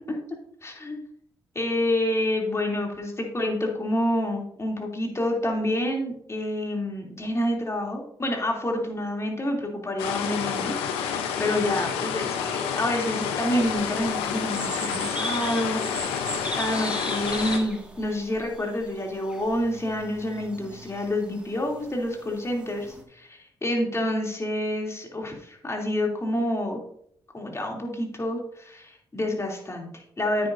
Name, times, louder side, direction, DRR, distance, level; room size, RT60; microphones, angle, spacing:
voice 1, 0.6-1.0 1.5-12.4 12.8-26.8 27.3-30.5, left 1 dB, 30° left, 0 dB, 2.8 m, -28 dB
sound 1, 10.0-17.6, left 7 dB, 90° left, 0.8 m, -29 dB
sound 2, 13.4-23.0, right 1 dB, 10° right, 1.8 m, -38 dB
9.1 x 9.1 x 2.6 m, 0.68 s
supercardioid pair, 50°, 9 cm